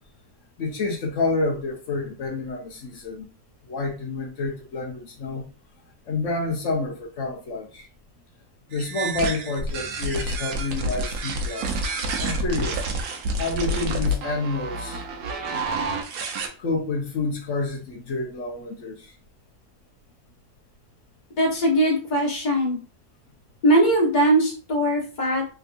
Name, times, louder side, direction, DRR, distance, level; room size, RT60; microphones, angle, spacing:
voice 1, 0.6-3.3 3.7-5.5 6.1-7.8 8.7-11.9 12.2-12.8 13.4-15.0 16.6-18.9, left 3 dB, 55° left, 1 dB, 1.1 m, -28 dB
sound 1, 8.7-16.5, right 1 dB, 70° right, 1.1 m, -28 dB
voice 2, 21.4-22.8 23.6-25.5, right 1 dB, 30° left, -3 dB, 1.3 m, -20 dB
3.5 x 2.7 x 2.4 m, 0.37 s
omnidirectional pair, 1.7 m